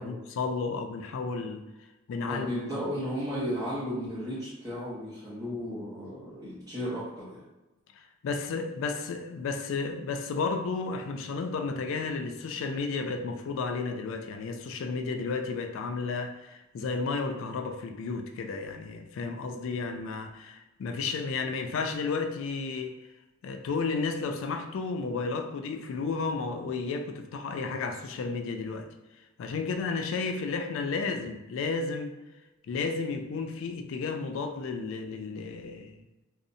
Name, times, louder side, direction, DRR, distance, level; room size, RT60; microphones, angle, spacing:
voice 1, 0.0-1.6 2.1-2.5 8.0-23.0 23.4-28.9 29.4-32.1 32.6-36.0, left 4 dB, 65° left, 6 dB, 0.3 m, -32 dB
voice 2, 2.3-7.4, equal, 15° right, -10 dB, 0.6 m, -34 dB
2.6 x 2.0 x 2.6 m, 1.0 s
head